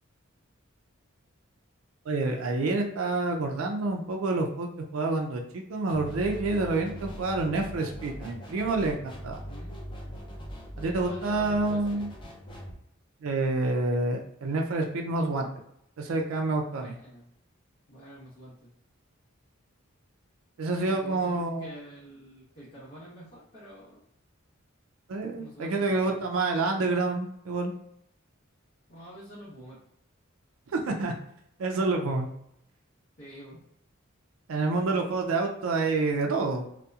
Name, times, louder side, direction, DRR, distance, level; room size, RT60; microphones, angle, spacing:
voice 1, 2.1-9.4 10.8-12.1 13.2-15.5 16.0-16.9 20.6-21.7 25.1-27.7 30.7-31.1 31.6-32.3 34.5-36.7, right 3 dB, 80° right, 2 dB, 0.4 m, -28 dB
sound 1, 5.9-12.7, equal, 25° left, 0.5 m, -41 dB
voice 2, 9.4-9.8 11.0-12.0 16.8-17.3 17.9-18.7 20.8-24.0 25.4-26.2 28.9-29.8 33.2-33.7, equal, 50° left, -9 dB, 0.8 m, -47 dB
2.7 x 2.1 x 2.3 m, 0.74 s
head